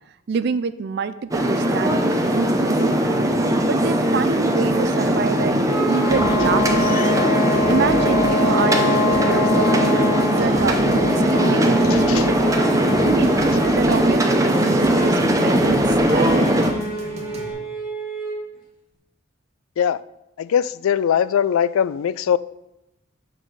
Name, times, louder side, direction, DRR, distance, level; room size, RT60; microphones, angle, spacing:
voice 1, 0.3-3.3 3.7-7.2 7.7-12.6 13.0-13.3 13.6-16.5, right 5 dB, 55° right, 0.4 m, -27 dB
sound 1, 1.3-16.7, right 1 dB, 15° right, 0.6 m, -19 dB
sound 2, 5.6-18.4, left 1 dB, 25° left, 3.0 m, -25 dB
sound 3, 6.1-17.5, equal, 35° right, 1.2 m, -36 dB
voice 2, 11.8-12.3 19.8-20.0 20.4-22.4, left 8 dB, 90° left, 0.3 m, -21 dB
6.9 x 4.3 x 6.1 m
head